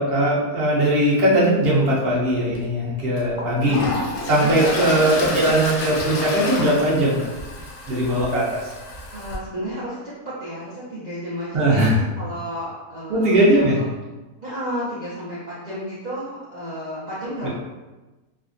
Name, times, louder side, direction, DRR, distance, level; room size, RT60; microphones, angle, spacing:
voice 1, 0.0-7.3 7.9-8.5 11.5-12.0 13.1-13.8 17.4-17.5, right 1 dB, 45° right, -6 dB, 0.9 m, -19 dB
Toilet flush, 2.5-2.6 3.2-9.4, left 2 dB, 70° left, 1.0 m, -30 dB
voice 2, 4.4-5.1 9.1-13.8 14.4-17.5, equal, 80° right, -9 dB, 0.4 m, -32 dB
3.4 x 2.1 x 2.5 m, 1.1 s
omnidirectional pair, 1.7 m